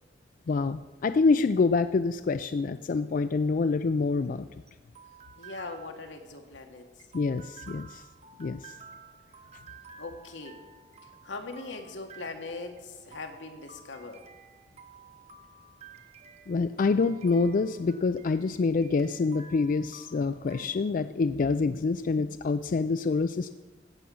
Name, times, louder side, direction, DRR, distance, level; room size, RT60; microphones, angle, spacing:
voice 1, 0.5-4.5 7.1-8.0 8.4-8.7 16.5-23.5, left 4 dB, 45° left, 11 dB, 0.3 m, -26 dB
sound 1, 4.0-20.7, right 5 dB, 35° right, 0.9 m, -52 dB
voice 2, 5.4-6.9 10.0-10.6 11.2-14.2, left 3 dB, 85° left, 4 dB, 1.6 m, -40 dB
16.0 x 6.2 x 7.0 m, 1.2 s
head